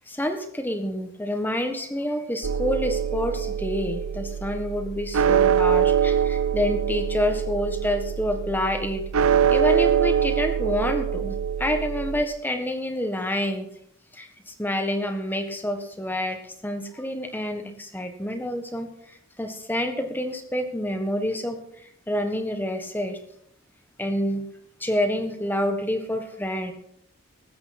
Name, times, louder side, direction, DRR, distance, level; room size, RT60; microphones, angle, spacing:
voice 1, 0.1-9.0 9.5-13.7 14.1-21.6 22.1-23.2 24.0-24.5 24.8-26.7, left 1 dB, 10° left, 6 dB, 1.4 m, -28 dB
sound 1, 2.4-12.2, right 7 dB, 85° right, 0.5 m, -24 dB
20.0 x 8.6 x 4.3 m, 0.74 s
head